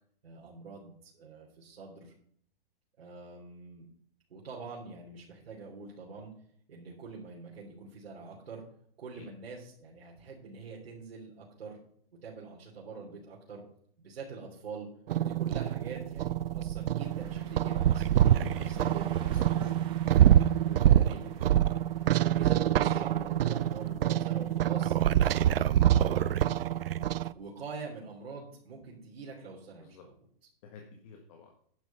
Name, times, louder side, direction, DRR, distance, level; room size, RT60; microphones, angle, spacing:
voice 1, 0.2-2.1 3.0-3.9 4.3-6.3 6.7-8.6 9.0-11.8 12.2-13.6 14.0-14.9 15.2-19.1 20.6-21.7 22.3-24.9 25.3-26.3 27.3-30.1, right 4 dB, 90° right, -4 dB, 3.4 m, -44 dB
sound 1, 15.1-27.3, right 11 dB, 75° right, 0.6 m, -25 dB
sound 2, 17.0-23.9, right 7 dB, 15° right, 0.9 m, -48 dB
voice 2, 18.2-19.7 22.0-22.3 29.8-30.0 30.6-31.5, left 4 dB, 35° left, 3 dB, 1.6 m, -48 dB
10.5 x 7.4 x 5.7 m, 0.63 s
hypercardioid pair, 165°, 29 cm